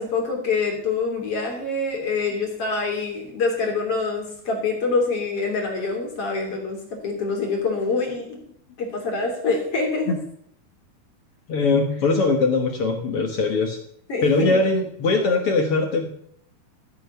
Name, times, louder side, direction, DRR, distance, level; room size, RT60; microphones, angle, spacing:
voice 1, 0.0-8.4 8.8-10.2 14.1-14.6, left 4 dB, 40° left, 1 dB, 3.7 m, -25 dB
voice 2, 11.5-13.8 14.2-16.1, left 3 dB, 60° left, 4 dB, 1.5 m, -21 dB
14.5 x 9.0 x 5.6 m, 0.67 s
omnidirectional pair, 4.3 m